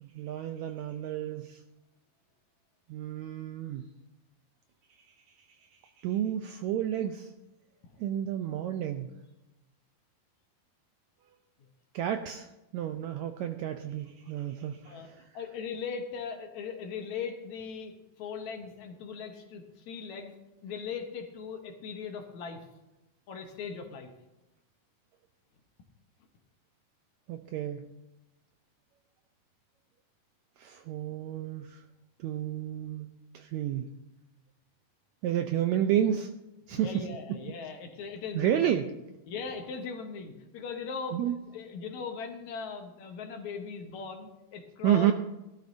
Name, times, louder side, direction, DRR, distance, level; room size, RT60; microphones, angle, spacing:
voice 1, 0.0-1.6 2.9-3.9 5.0-5.1 5.6-7.3 8.0-9.1 11.9-15.3 27.3-27.9 30.6-31.8 32.2-33.9 35.2-36.3 36.7-37.4 38.3-38.9 41.1-41.4 44.8-45.1, right 10 dB, 90° right, 7 dB, 1.6 m, -31 dB
voice 2, 14.9-20.3 20.6-22.7 23.3-24.1 36.7-38.7 39.3-41.2 41.5-45.1, left 5 dB, 65° left, 4 dB, 2.2 m, -39 dB
17.5 x 12.5 x 2.6 m, 0.97 s
omnidirectional pair, 3.8 m